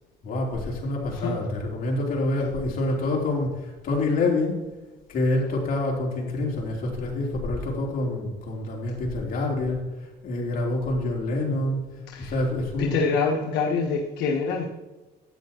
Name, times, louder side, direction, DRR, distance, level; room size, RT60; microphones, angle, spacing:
voice 1, 0.2-4.6 5.1-9.8 10.2-11.8 12.2-13.0, left 2 dB, 60° left, -2 dB, 3.4 m, -27 dB
voice 2, 12.8-14.7, left 5 dB, 90° left, 0 dB, 1.3 m, -25 dB
12.5 x 9.1 x 3.0 m, 1.1 s
cardioid pair, 110°, 17 cm